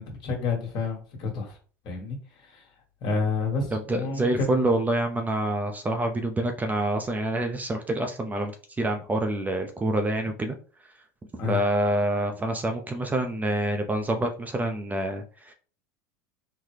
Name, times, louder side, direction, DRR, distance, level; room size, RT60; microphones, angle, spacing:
voice 1, 0.0-1.6 1.8-2.6 3.0-4.7 11.4-11.6, left 4 dB, 55° left, 1.5 m, -30 dB
voice 2, 3.7-8.5 8.8-10.6 11.4-15.5, right 1 dB, 15° right, 0.5 m, -27 dB
3.9 x 2.1 x 3.2 m
supercardioid pair, 100°, 10 cm